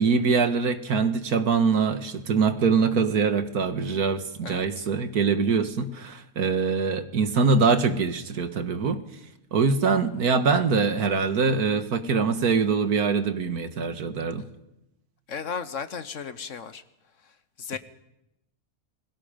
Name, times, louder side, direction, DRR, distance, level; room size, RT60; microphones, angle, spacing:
voice 1, 0.0-9.0 9.5-14.5, right 5 dB, 70° right, 9 dB, 1.9 m, -23 dB
voice 2, 4.4-4.9 15.3-16.8 17.6-17.8, left 6 dB, 55° left, 12 dB, 1.2 m, -35 dB
29.0 x 22.5 x 5.2 m, 0.87 s
omnidirectional pair, 1.7 m